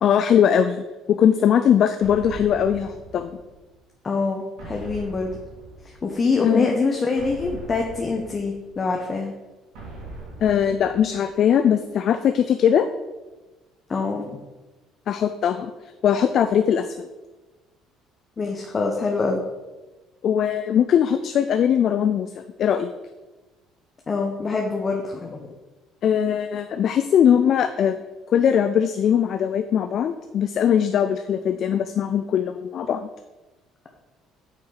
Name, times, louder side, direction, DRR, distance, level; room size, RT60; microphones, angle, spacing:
voice 1, 0.0-3.4 6.4-6.7 10.4-12.9 15.1-15.7 16.0-17.1 20.2-22.9 26.0-28.0 28.3-33.1, left 8 dB, 55° left, 9 dB, 0.4 m, -20 dB
sound 1, 2.0-3.8 4.6-6.3 7.2-8.9 9.7-11.5, right 2 dB, 70° right, 2.5 m, -41 dB
voice 2, 4.0-5.4 5.8-9.3 13.9-14.3 18.4-19.4 24.1-25.5, left 4 dB, 35° left, 1 dB, 1.0 m, -25 dB
8.8 x 4.8 x 4.0 m, 1.2 s
hypercardioid pair, 60°, 0 cm